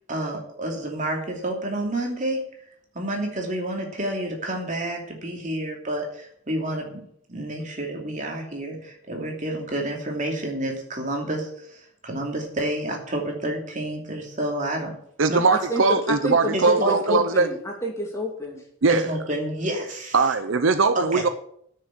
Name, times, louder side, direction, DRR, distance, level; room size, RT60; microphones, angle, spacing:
voice 1, 0.1-2.4 2.9-7.0 7.3-14.9 15.3-15.4 16.5-17.2 18.9-20.2 20.9-21.2, right 1 dB, 35° right, 1 dB, 2.8 m, -29 dB
voice 2, 15.2-17.5 18.8-19.1 20.1-21.3, right 4 dB, 65° right, 10 dB, 0.7 m, -20 dB
voice 3, 15.7-18.6, left 1 dB, 15° left, 0 dB, 2.7 m, -29 dB
9.7 x 6.7 x 8.7 m, 0.67 s
head